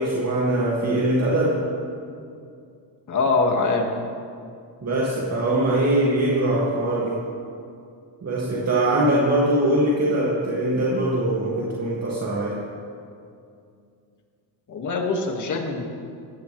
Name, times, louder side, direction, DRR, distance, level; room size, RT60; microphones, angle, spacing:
voice 1, 0.0-1.6 4.8-7.2 8.2-12.6, right 1 dB, 35° right, -5 dB, 2.2 m, -22 dB
voice 2, 3.1-3.9 14.7-15.9, left 3 dB, 40° left, 2 dB, 1.9 m, -23 dB
18.5 x 15.5 x 3.3 m, 2.4 s
cardioid pair, 135°, 44 cm